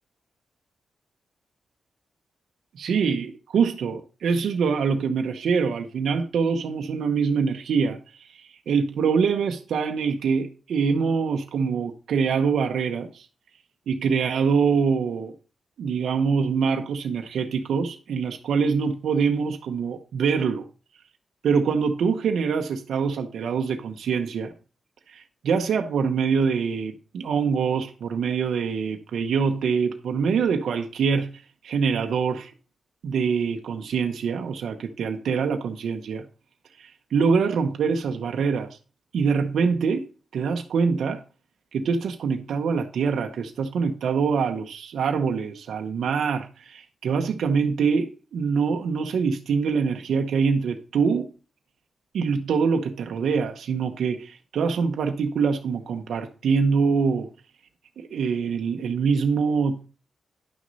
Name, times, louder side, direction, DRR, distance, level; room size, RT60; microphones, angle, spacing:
voice 1, 2.7-13.3 13.9-15.3 15.8-20.6 21.4-24.5 25.1-31.3 31.6-32.5 33.0-36.2 36.8-38.8 39.1-41.2 41.7-51.3 52.1-57.3 58.0-59.9, right 5 dB, 90° right, 0.8 m, -24 dB
10.5 x 6.2 x 4.1 m
cardioid pair, 100°, 0 cm